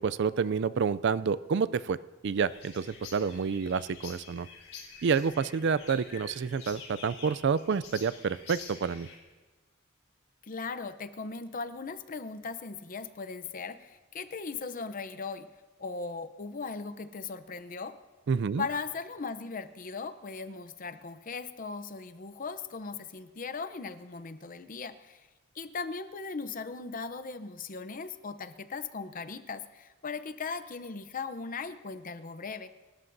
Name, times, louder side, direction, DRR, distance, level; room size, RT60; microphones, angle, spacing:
voice 1, 0.0-2.0 2.2-4.5 5.0-9.1 18.3-18.7, right 6 dB, 55° right, 16 dB, 0.4 m, -29 dB
sound 1, 2.4-9.2, left 5 dB, 80° left, 4.0 m, -48 dB
voice 2, 10.4-15.5 15.8-18.0 18.6-25.2 25.5-32.7, left 4 dB, 40° left, 12 dB, 0.7 m, -38 dB
28.0 x 13.5 x 2.7 m, 1.3 s
head